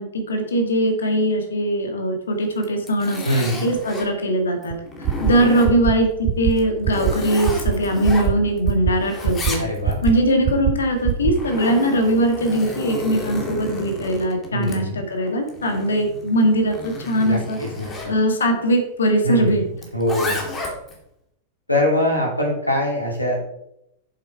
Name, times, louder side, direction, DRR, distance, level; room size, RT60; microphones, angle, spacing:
voice 1, 0.0-4.8 5.2-9.6 10.0-17.6 18.0-19.6, right 1 dB, 70° left, 5 dB, 2.0 m, -21 dB
Zipper (clothing), 2.5-4.1 4.6-6.0 6.5-8.7 9.0-10.1 11.0-18.1 19.8-21.0, left 2 dB, 25° left, 2.5 m, -32 dB
voice 2, 3.2-3.7 9.6-10.0 14.5-15.0 17.2-17.9 19.2-19.7 19.9-20.4 21.7-23.4, left 1 dB, 85° left, -1 dB, 3.3 m, -23 dB
sound 1, 4.7-4.8 5.0-5.3 5.6-5.9 6.2-6.5 6.8-7.1 7.4-7.7 8.0-8.3 8.6-8.9 9.2-9.5 9.8-10.1 10.4-10.7 11.0-11.3, right 12 dB, 35° right, 0.8 m, -20 dB
8.1 x 7.5 x 4.7 m, 0.77 s
figure-of-eight pair, 90°, 0 cm